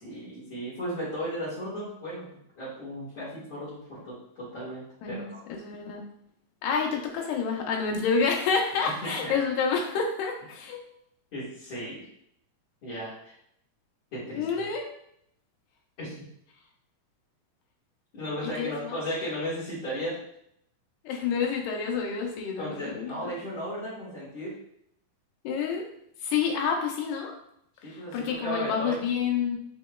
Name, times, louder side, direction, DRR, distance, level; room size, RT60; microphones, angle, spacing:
voice 1, 0.0-2.3 2.6-5.4 8.8-9.4 11.3-12.0 12.8-13.3 14.1-14.4 16.0-16.1 18.1-20.2 22.6-24.5 27.8-29.0, equal, 55° left, -9 dB, 2.6 m, -35 dB
voice 2, 5.0-6.0 6.6-10.8 14.3-14.9 18.4-19.0 21.0-23.3 25.4-25.9 26.2-27.4 27.8-29.6, left 5 dB, 85° left, 1 dB, 2.4 m, -29 dB
7.2 x 3.1 x 2.3 m, 0.70 s
omnidirectional pair, 3.8 m